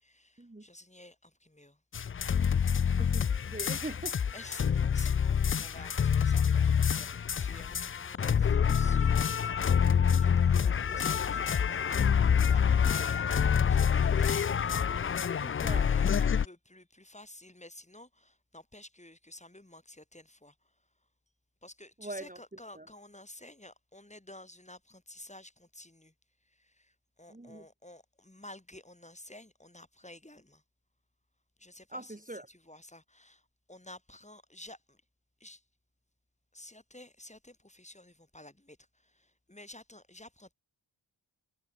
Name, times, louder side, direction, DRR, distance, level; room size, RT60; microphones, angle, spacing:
voice 1, 0.0-1.8 4.3-20.7 21.6-26.1 26.4-30.6 31.6-35.0 35.4-35.6 36.5-40.5, left 1 dB, 15° left, 5.7 m, -52 dB
sound 1, 1.9-16.4, left 7 dB, 30° left, 0.4 m, -27 dB
voice 2, 2.9-4.2 15.4-15.9 22.0-22.4 22.7-22.9 27.3-27.7 31.9-32.5, right 2 dB, 15° right, 3.1 m, -42 dB
cardioid pair, 65°, 47 cm